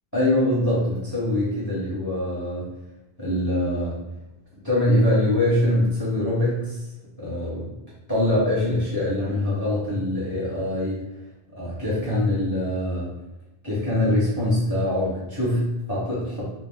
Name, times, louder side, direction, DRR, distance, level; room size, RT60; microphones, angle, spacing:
voice 1, 0.1-2.7 3.2-4.0 4.6-6.8 7.2-7.7 8.1-11.0 11.5-13.1 13.6-16.4, left 1 dB, 20° left, -7 dB, 0.9 m, -23 dB
2.4 x 2.2 x 3.4 m, 0.97 s
omnidirectional pair, 1.1 m